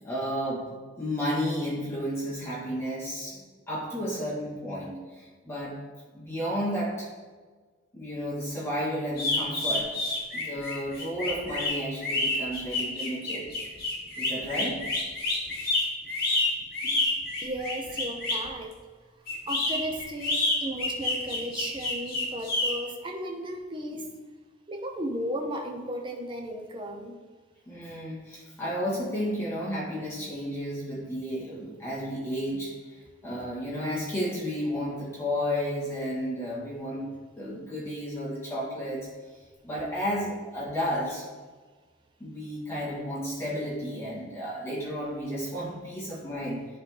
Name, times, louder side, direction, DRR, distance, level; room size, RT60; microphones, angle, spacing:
voice 1, 0.0-5.8 6.1-7.1 7.9-13.5 14.2-14.8 16.9-17.1 27.7-39.1 39.6-41.2 42.2-46.6, equal, 15° left, -8 dB, 2.1 m, -32 dB
sound 1, 9.1-18.5 19.3-22.7, left 2 dB, 55° left, 2.3 m, -28 dB
voice 2, 17.4-18.8 19.5-24.1 24.7-27.2, equal, 25° right, 2 dB, 0.7 m, -35 dB
10.5 x 4.1 x 3.9 m, 1.4 s
head